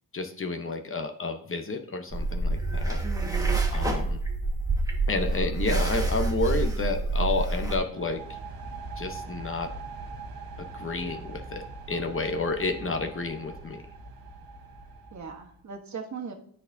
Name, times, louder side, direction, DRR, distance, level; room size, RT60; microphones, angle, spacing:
voice 1, 0.1-3.0 3.7-4.2 5.1-8.4 9.0-9.7 10.6-13.8, left 3 dB, 35° left, 5 dB, 0.9 m, -30 dB
sound 1, 2.1-7.8, right 3 dB, 10° right, 1.5 m, -27 dB
voice 2, 3.0-3.6 12.8-13.1 15.1-16.3, right 5 dB, 50° right, 2 dB, 1.3 m, -39 dB
sound 2, 7.8-15.5, right 3 dB, 80° right, 1.2 m, -42 dB
12.5 x 4.3 x 2.7 m, 0.64 s
cardioid pair, 90°, 35 cm